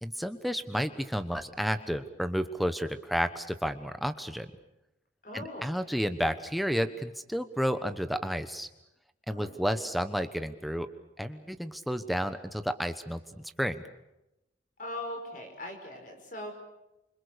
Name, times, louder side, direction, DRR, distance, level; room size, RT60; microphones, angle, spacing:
voice 1, 0.0-4.5 5.3-8.7 9.3-10.9 11.2-13.8, equal, ahead, 9 dB, 1.1 m, -31 dB
voice 2, 5.2-5.7 9.3-9.5 14.8-16.5, left 1 dB, 45° left, 5 dB, 5.3 m, -40 dB
26.5 x 25.0 x 6.8 m, 0.92 s
head